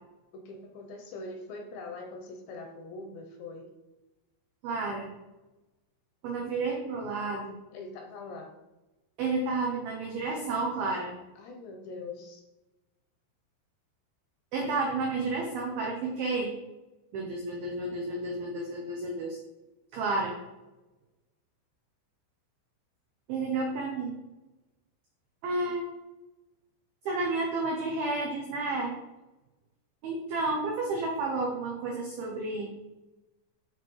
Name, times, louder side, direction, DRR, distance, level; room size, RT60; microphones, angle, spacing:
voice 1, 0.3-3.7 7.7-8.5 11.4-12.4, left 3 dB, 75° left, 2 dB, 2.8 m, -42 dB
voice 2, 4.6-5.1 6.2-7.5 9.2-11.1 14.5-16.5 17.1-19.4 19.9-20.4 23.3-24.2 25.4-25.9 27.1-28.9 30.0-32.7, right 3 dB, 80° right, 1 dB, 2.1 m, -31 dB
13.0 x 4.5 x 4.7 m, 1.0 s
omnidirectional pair, 6.0 m